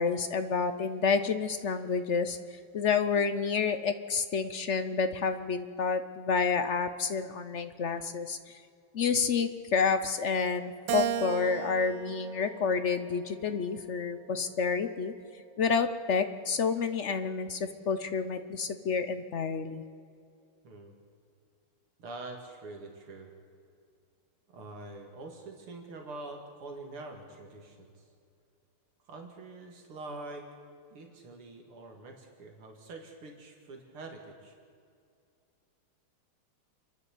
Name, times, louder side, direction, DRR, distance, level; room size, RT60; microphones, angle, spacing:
voice 1, 0.0-2.4 2.7-8.4 8.9-15.1 15.6-19.8, left 5 dB, 60° left, 9 dB, 0.7 m, -29 dB
Keyboard (musical), 10.9-13.4 14.0-15.2, right 11 dB, 70° right, 1.1 m, -36 dB
voice 2, 20.6-20.9 22.0-23.3 24.5-28.1 29.1-30.4 30.9-34.5, right 2 dB, 85° right, 2 dB, 3.0 m, -45 dB
28.5 x 11.0 x 8.4 m, 2.3 s
omnidirectional pair, 2.4 m